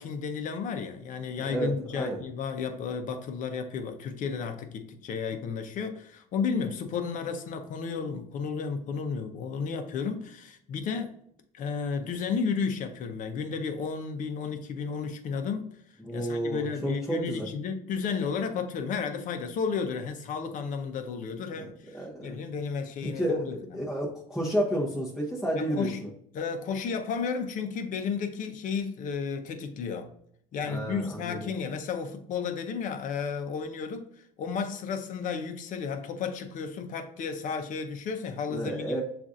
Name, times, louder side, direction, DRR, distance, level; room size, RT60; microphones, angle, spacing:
voice 1, 0.0-11.2 11.5-15.7 16.1-23.8 25.6-26.1 26.3-30.1 30.5-34.1 34.4-39.0, left 5 dB, 45° left, 0.6 m, -33 dB
voice 2, 1.4-2.2 16.0-17.5 21.6-21.7 21.9-22.4 23.2-23.5 23.7-26.1 30.6-31.4 38.5-39.0, right 1 dB, ahead, 0.7 m, -31 dB
6.9 x 2.5 x 2.5 m
cardioid pair, 125°, 19 cm